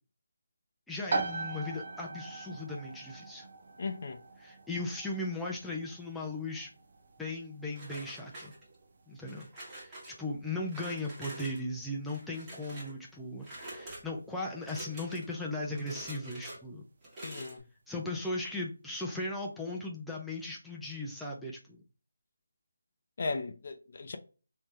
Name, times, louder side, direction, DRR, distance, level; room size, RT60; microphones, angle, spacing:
voice 1, 0.9-3.5 4.4-6.7 7.2-8.5 9.1-16.8 17.9-21.8, left 2 dB, ahead, 0.5 m, -37 dB
sound 1, 1.1-15.6, right 3 dB, 45° right, 0.6 m, -42 dB
voice 2, 3.8-4.2 17.2-17.6 23.2-24.2, left 3 dB, 45° left, 0.6 m, -36 dB
sound 2, 7.7-8.9 9.3-10.2 10.7-11.6 12.1-13.0 13.4-14.0 14.6-15.3 15.7-16.6 17.0-17.6, right 1 dB, 15° right, 1.4 m, -46 dB
3.5 x 2.8 x 3.2 m
figure-of-eight pair, 160°, 0 cm